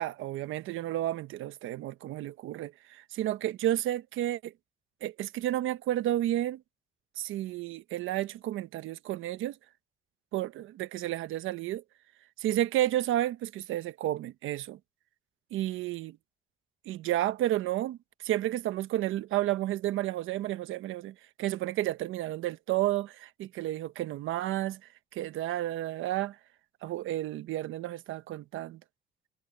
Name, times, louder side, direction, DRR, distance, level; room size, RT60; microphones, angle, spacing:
voice 1, 0.0-4.5 5.0-6.6 7.2-9.6 10.3-11.8 12.4-14.8 15.5-16.2 16.9-18.0 18.2-24.8 25.1-26.4 26.8-28.8, right 14 dB, 90° right, 1.2 m, -31 dB
cardioid pair, 90°, 20 cm